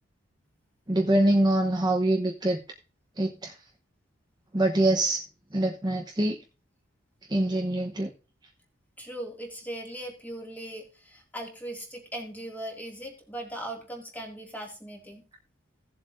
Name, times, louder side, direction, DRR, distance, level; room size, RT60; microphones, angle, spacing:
voice 1, 0.9-2.6 3.2-3.5 4.5-5.2 5.5-6.4 7.3-8.1, right 1 dB, 20° right, 1 dB, 0.9 m, -24 dB
voice 2, 9.0-15.2, right 1 dB, 10° left, 1 dB, 2.3 m, -39 dB
17.0 x 7.5 x 2.6 m, 0.32 s
head